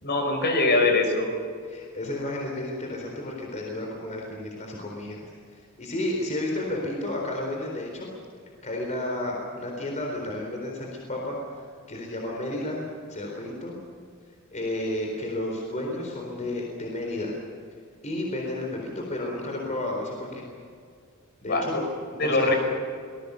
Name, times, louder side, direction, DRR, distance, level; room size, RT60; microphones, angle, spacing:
voice 1, 0.0-1.3 21.5-21.8 22.2-22.6, left 2 dB, 50° left, 4 dB, 5.1 m, -22 dB
voice 2, 1.7-5.3 5.5-8.1 8.6-12.8 13.1-13.7 14.5-17.3 18.0-20.5 21.4-21.8 22.1-22.5, left 1 dB, 35° left, 0 dB, 4.1 m, -32 dB
26.0 x 20.0 x 7.0 m, 2.2 s
head